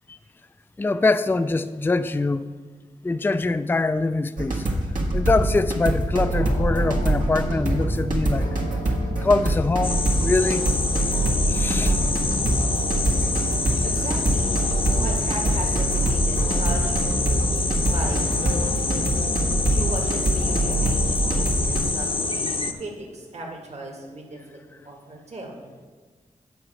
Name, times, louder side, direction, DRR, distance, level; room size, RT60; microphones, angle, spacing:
voice 1, 0.8-2.5 3.0-4.7 5.1-8.5 9.2-10.6 11.5-12.0, left 3 dB, 15° left, 11 dB, 0.3 m, -23 dB
sound 1, 4.4-21.8, right 1 dB, 75° right, 1.6 m, -24 dB
sound 2, 6.2-21.5, left 1 dB, 65° left, 1.0 m, -37 dB
sound 3, 9.8-22.7, left 3 dB, 40° left, 0.7 m, -27 dB
voice 2, 13.8-14.6 14.9-19.1 19.7-24.6 24.8-25.6, right 2 dB, 50° right, -1 dB, 1.8 m, -37 dB
9.0 x 5.1 x 7.7 m, 1.4 s
cardioid pair, 70°, 14 cm